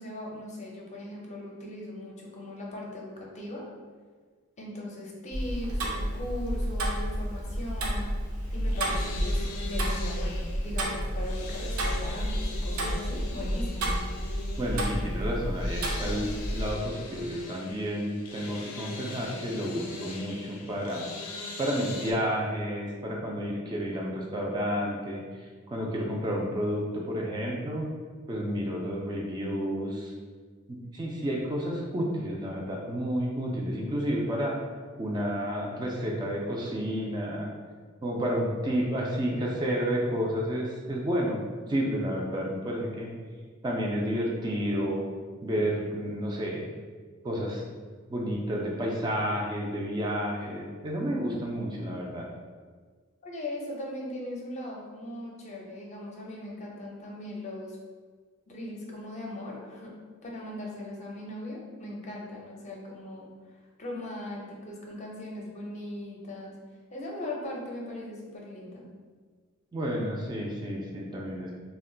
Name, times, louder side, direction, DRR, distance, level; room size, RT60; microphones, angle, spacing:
voice 1, 0.0-3.7 4.6-8.1 8.5-13.9 53.2-57.8 58.5-59.9 60.2-63.3 63.8-66.5 66.9-68.8, left 1 dB, 35° left, -2 dB, 0.5 m, -39 dB
Tick-tock, 5.3-16.7, equal, 80° right, 0.6 m, -30 dB
sound 1, 8.4-22.1, left 3 dB, 85° left, 0.4 m, -42 dB
voice 2, 14.6-21.1 21.6-27.9 28.3-30.1 30.7-34.6 35.0-37.5 38.0-41.4 41.7-43.1 43.6-45.1 45.4-46.7 47.2-47.6 48.1-52.3 69.7-71.5, equal, 20° right, -2 dB, 0.3 m, -31 dB
2.4 x 2.1 x 3.7 m, 1.5 s
head